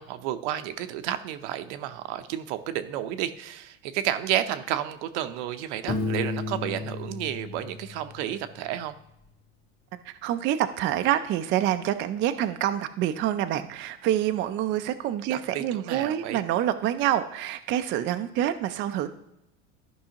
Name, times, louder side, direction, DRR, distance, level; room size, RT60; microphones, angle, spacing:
voice 1, 0.0-8.9 15.3-16.4, right 11 dB, 75° right, 10 dB, 0.7 m, -31 dB
Piano, 5.9-8.6, left 3 dB, 40° left, 1.9 m, -33 dB
voice 2, 10.2-19.1, right 11 dB, 35° right, 9 dB, 0.4 m, -27 dB
13.0 x 5.5 x 2.9 m, 0.86 s
supercardioid pair, 135°, 35 cm